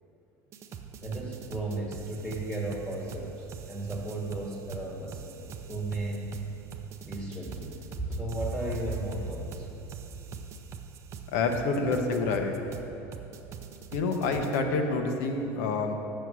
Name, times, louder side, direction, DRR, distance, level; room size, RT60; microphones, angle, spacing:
sound 1, 0.5-14.6, right 7 dB, 35° right, 0.5 m, -44 dB
voice 1, 1.0-5.2 5.7-6.3 7.0-9.7, right 2 dB, ahead, -3 dB, 1.2 m, -34 dB
voice 2, 11.3-12.5 13.9-15.9, left 3 dB, 75° left, 4 dB, 0.9 m, -27 dB
6.9 x 6.4 x 6.2 m, 2.9 s
cardioid pair, 140°, 8 cm